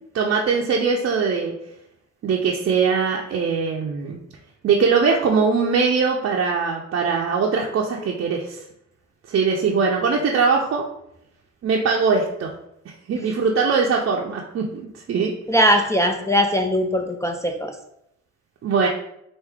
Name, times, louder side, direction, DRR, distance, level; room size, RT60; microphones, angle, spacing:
voice 1, 0.1-1.5 2.2-4.2 4.6-8.6 9.3-10.9 11.6-12.5 13.1-15.3 18.6-18.9, right 5 dB, 45° right, -1 dB, 0.6 m, -21 dB
voice 2, 15.5-17.8, equal, 10° left, 3 dB, 0.4 m, -20 dB
4.5 x 2.6 x 3.6 m, 0.78 s
cardioid pair, 90°, 30 cm